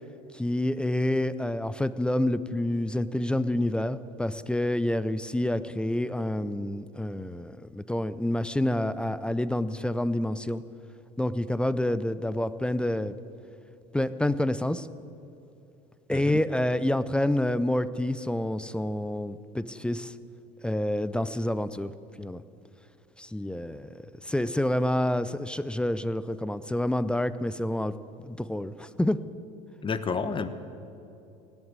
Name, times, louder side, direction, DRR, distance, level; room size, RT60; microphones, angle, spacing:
voice 1, 0.3-10.6 11.2-13.1 13.9-14.9 16.1-20.1 20.6-21.9 22.2-22.4 23.2-27.9 28.3-29.2, left 1 dB, 5° left, 15 dB, 0.5 m, -28 dB
voice 2, 29.8-30.5, left 5 dB, 25° left, 12 dB, 1.0 m, -30 dB
17.0 x 8.2 x 9.4 m, 2.8 s
supercardioid pair, 95°, 19 cm